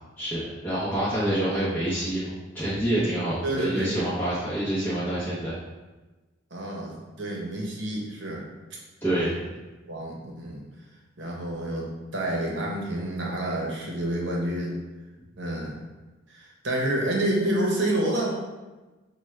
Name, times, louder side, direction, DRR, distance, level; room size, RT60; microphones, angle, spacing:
voice 1, 0.2-5.5 9.0-9.4, right 1 dB, 10° left, -12 dB, 0.8 m, -27 dB
voice 2, 3.4-3.9 6.5-8.5 9.1-9.4 9.9-10.6 11.2-14.7 15.4-15.8 16.3-18.4, right 1 dB, 60° right, -2 dB, 0.9 m, -29 dB
6.0 x 2.3 x 3.2 m, 1.2 s
head